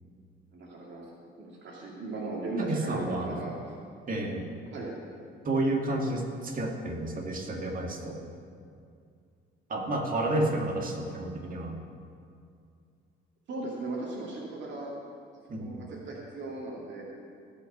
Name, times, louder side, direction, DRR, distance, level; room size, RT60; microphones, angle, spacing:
voice 1, 0.5-1.1 1.4-3.5 4.7-4.9 13.5-14.9 15.6-17.0, right 2 dB, 65° right, -4 dB, 2.5 m, -37 dB
voice 2, 2.6-3.5 4.1-4.5 5.4-8.2 9.7-11.8 15.5-15.8, right 1 dB, 45° right, 1 dB, 2.2 m, -30 dB
18.0 x 6.0 x 6.6 m, 2.3 s
cardioid pair, 90°, 20 cm